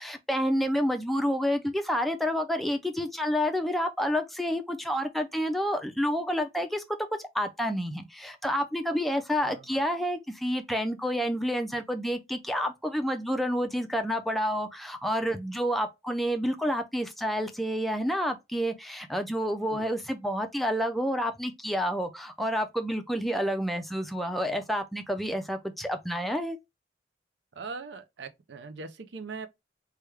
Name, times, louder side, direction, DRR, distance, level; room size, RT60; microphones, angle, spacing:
voice 1, 0.0-6.8 7.2-26.6, equal, ahead, 0.4 m, -29 dB
voice 2, 9.4-9.8 19.7-19.9 27.6-29.5, right 4 dB, 75° right, 0.5 m, -41 dB
3.4 x 2.3 x 3.2 m
head